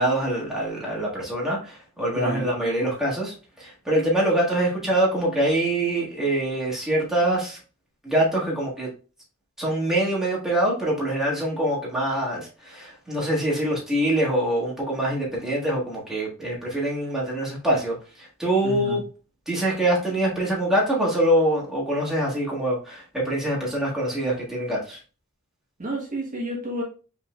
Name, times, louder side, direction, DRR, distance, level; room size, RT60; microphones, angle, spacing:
voice 1, 0.0-7.6 8.0-8.9 9.6-19.0 19.5-25.0, right 1 dB, ahead, -5 dB, 1.5 m, -24 dB
voice 2, 2.1-2.5 18.6-19.0 25.8-26.8, right 1 dB, 40° right, -1 dB, 1.2 m, -30 dB
5.4 x 3.6 x 2.2 m, 0.35 s
head